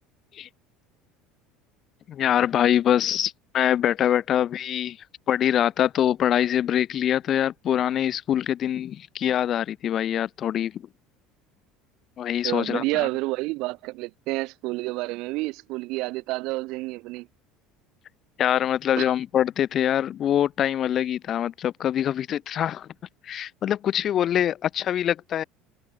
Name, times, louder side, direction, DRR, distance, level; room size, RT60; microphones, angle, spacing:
voice 1, 2.1-5.0 5.3-10.8 12.2-12.8 18.4-22.9 23.2-25.4, left 10 dB, 45° left, 2.6 m, -24 dB
voice 2, 12.4-17.3 19.0-19.1, right 22 dB, 65° right, 3.0 m, -29 dB
supercardioid pair, 120°, 0 cm